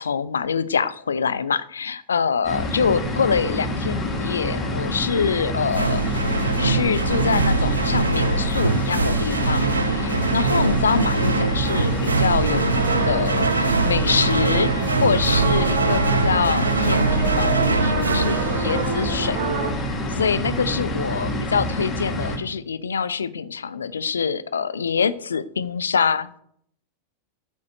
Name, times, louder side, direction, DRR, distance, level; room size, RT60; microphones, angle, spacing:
voice 1, 0.0-6.0 6.6-19.4 20.1-26.4, left 6 dB, 70° left, 15 dB, 0.8 m, -25 dB
sound 1, 2.4-22.4, left 1 dB, 25° left, 3.2 m, -27 dB
sound 2, 5.7-19.4, right 4 dB, 80° right, 0.7 m, -23 dB
sound 3, 11.5-19.7, right 5 dB, 55° right, 2.4 m, -30 dB
9.3 x 7.1 x 8.4 m, 0.66 s
figure-of-eight pair, 90°, 0 cm